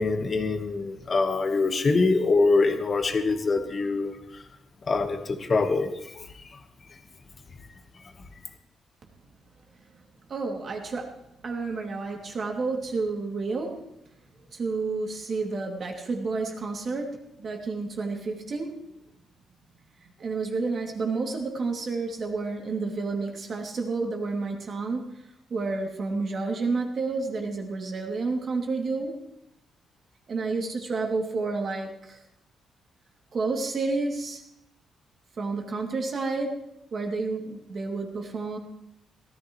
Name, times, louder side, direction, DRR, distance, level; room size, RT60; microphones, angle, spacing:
voice 1, 0.0-4.2 4.9-5.9 6.1-6.2, left 3 dB, 35° left, 6 dB, 1.4 m, -24 dB
voice 2, 10.3-13.8 14.5-18.8 20.0-25.2 25.5-29.2 30.3-32.2 33.3-34.4 35.4-36.6 36.9-38.6, right 3 dB, 45° right, 1 dB, 2.7 m, -30 dB
18.0 x 13.5 x 3.2 m, 0.79 s
cardioid pair, 110°, 0 cm